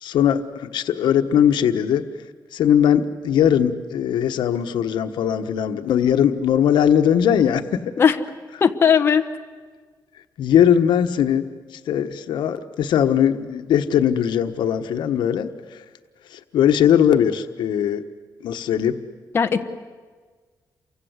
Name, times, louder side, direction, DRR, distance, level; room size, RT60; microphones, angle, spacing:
voice 1, 0.0-2.0 2.5-7.9 10.4-11.5 11.7-15.8 16.3-18.0 18.4-19.0, left 9 dB, 85° left, 8 dB, 1.3 m, -20 dB
voice 2, 8.6-9.2 19.3-19.6, left 7 dB, 30° left, 5 dB, 1.2 m, -17 dB
29.0 x 24.5 x 8.1 m, 1.5 s
wide cardioid pair, 175°, 8 cm